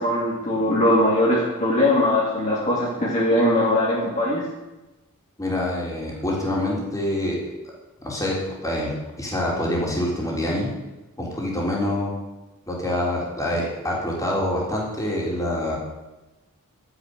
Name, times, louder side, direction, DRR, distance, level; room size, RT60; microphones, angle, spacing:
voice 1, 0.0-4.4, left 1 dB, 30° left, -6 dB, 2.9 m, -21 dB
voice 2, 5.4-7.4 8.0-10.7 11.2-12.2 12.7-15.8, left 1 dB, 15° left, -4 dB, 4.0 m, -26 dB
12.5 x 10.0 x 6.7 m, 1.1 s
head